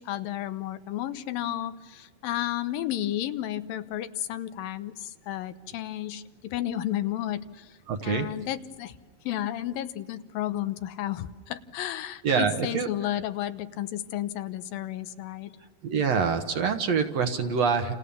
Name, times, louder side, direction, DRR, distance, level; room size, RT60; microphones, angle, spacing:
voice 1, 0.0-7.7 8.0-8.9 9.3-15.5, left 12 dB, 90° left, 11 dB, 2.7 m, -32 dB
voice 2, 7.9-8.3 12.2-12.9 15.8-18.0, right 6 dB, 60° right, 7 dB, 2.2 m, -25 dB
29.0 x 29.0 x 7.1 m, 1.3 s
omnidirectional pair, 3.9 m